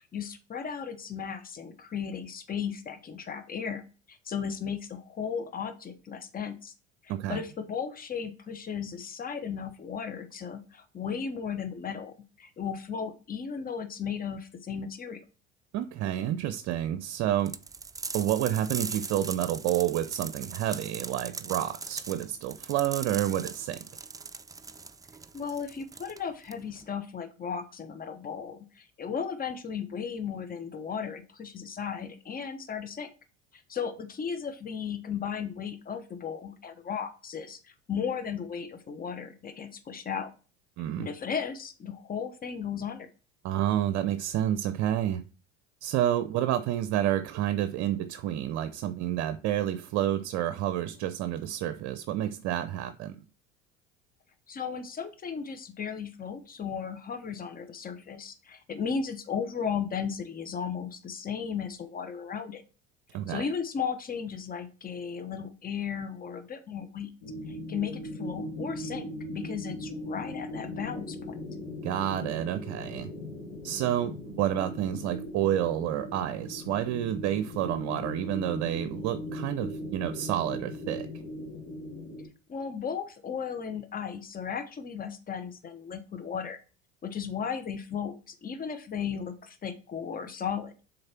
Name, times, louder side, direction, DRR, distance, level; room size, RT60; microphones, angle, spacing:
voice 1, 0.0-3.8 4.1-6.7 7.0-15.2 25.3-33.1 33.5-40.3 41.0-43.1 54.5-62.6 63.3-67.1 67.5-71.4 82.5-86.6 87.0-90.7, left 7 dB, 25° left, 1.1 m, -35 dB
voice 2, 7.1-7.4 15.7-17.5 18.1-23.8 40.8-41.1 43.4-45.2 45.8-53.2 63.1-63.5 71.8-73.1 73.6-81.2, right 12 dB, 55° right, 0.6 m, -29 dB
sound 1, 17.5-26.9, right 4 dB, 10° right, 0.4 m, -40 dB
sound 2, 67.2-82.3, left 1 dB, 70° left, 2.0 m, -39 dB
6.5 x 4.2 x 4.4 m
hypercardioid pair, 75°, 33 cm